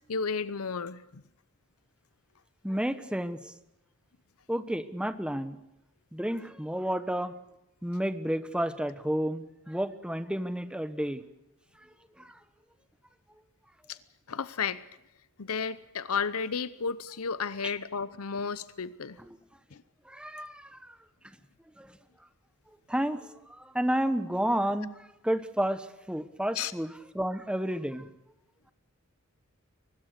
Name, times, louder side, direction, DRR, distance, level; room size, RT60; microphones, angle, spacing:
voice 1, 0.1-1.2 13.9-14.0 14.3-14.8 15.4-19.2 19.7-19.8 26.5-26.7, left 5 dB, 75° left, 15 dB, 0.8 m, -33 dB
voice 2, 2.6-3.5 4.5-5.6 6.1-7.3 7.8-11.2 12.2-12.4 17.6-17.7 19.2-19.4 20.1-21.0 21.8-22.0 22.9-28.1, equal, 5° right, 11 dB, 1.2 m, -31 dB
23.0 x 20.5 x 6.7 m, 0.90 s
head